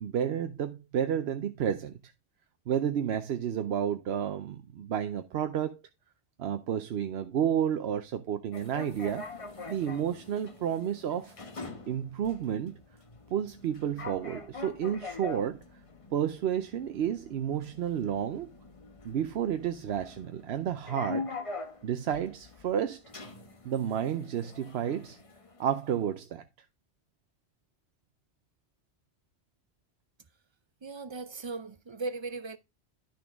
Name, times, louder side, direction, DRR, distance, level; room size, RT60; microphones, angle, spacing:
voice 1, 0.0-2.1 2.7-5.8 6.4-9.3 9.7-11.3 11.9-12.7 13.3-15.6 16.1-18.5 19.0-21.3 21.8-23.0 23.6-25.2 25.6-26.4, right 9 dB, 70° right, 0.9 m, -31 dB
sound 1, 8.5-26.0, left 4 dB, 30° left, 1.0 m, -44 dB
voice 2, 30.8-32.6, right 3 dB, 45° right, 0.4 m, -37 dB
11.5 x 6.1 x 3.5 m
omnidirectional pair, 1.1 m